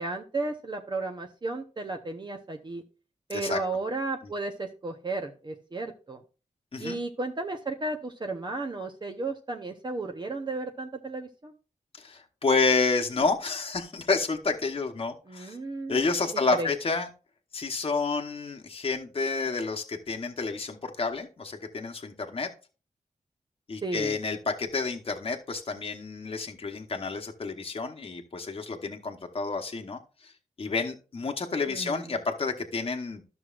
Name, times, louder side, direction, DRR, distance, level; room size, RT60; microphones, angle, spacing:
voice 1, 0.0-2.8 3.3-6.2 6.8-11.5 15.3-16.1 16.5-16.7 23.8-24.1 31.7-32.1, right 3 dB, 35° right, 4 dB, 0.8 m, -34 dB
voice 2, 12.0-15.6 15.9-17.1 17.5-22.5 23.7-30.3 30.6-33.2, left 4 dB, 45° left, 3 dB, 1.0 m, -29 dB
13.0 x 6.1 x 2.5 m, 0.34 s
wide cardioid pair, 125°, 14 cm